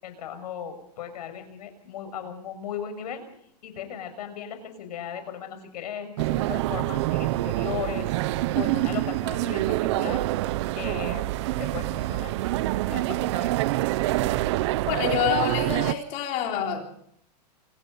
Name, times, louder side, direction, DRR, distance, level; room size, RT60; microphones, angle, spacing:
voice 1, 0.0-3.2 3.6-8.1 8.5-10.2 10.7-12.3 12.9-13.5, left 8 dB, 70° left, 9 dB, 6.7 m, -37 dB
sound 1, 6.2-15.9, right 16 dB, 40° right, 0.7 m, -26 dB
voice 2, 14.9-16.9, left 9 dB, 35° left, 2 dB, 3.7 m, -27 dB
26.5 x 19.0 x 5.5 m, 0.69 s
supercardioid pair, 160°, 21 cm